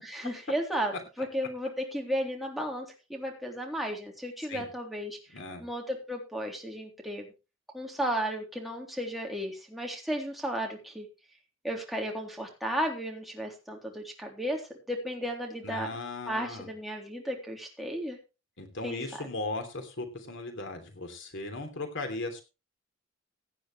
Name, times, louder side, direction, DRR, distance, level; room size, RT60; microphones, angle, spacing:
voice 1, 0.0-0.9 1.2-5.2 5.6-7.3 7.7-11.1 11.6-14.6 14.9-15.9 16.3-18.2 18.8-19.3, equal, ahead, 0 dB, 3.5 m, -34 dB
voice 2, 15.6-16.7 18.6-22.4, left 2 dB, 60° left, 6 dB, 3.1 m, -37 dB
17.0 x 10.0 x 3.2 m, 0.29 s
head